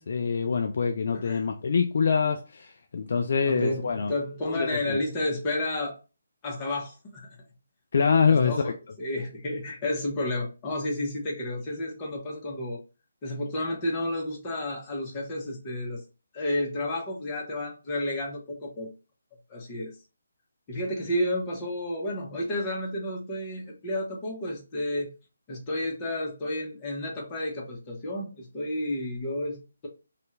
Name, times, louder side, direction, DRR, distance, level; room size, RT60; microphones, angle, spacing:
voice 1, 0.0-4.1 4.5-5.0 7.9-8.7, left 5 dB, 55° left, 0.3 m, -25 dB
voice 2, 1.1-1.4 3.2-6.0 6.4-7.4 8.3-12.8 13.2-16.0 16.3-18.9 19.5-19.9 20.7-25.1 25.5-29.9, left 1 dB, 25° left, 1.1 m, -31 dB
2.7 x 2.5 x 3.2 m
figure-of-eight pair, 145°, 0 cm